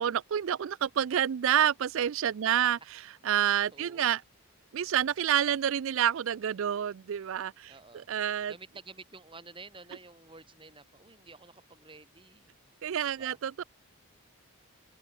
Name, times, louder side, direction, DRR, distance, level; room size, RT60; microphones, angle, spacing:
voice 1, 0.0-2.8 3.2-4.2 4.7-7.7 8.1-8.5 12.8-13.6, right 9 dB, 60° right, 0.3 m, -28 dB
voice 2, 3.7-4.1 7.7-8.1 8.5-12.5 13.2-13.4, right 3 dB, 20° right, 3.0 m, -50 dB
open air
head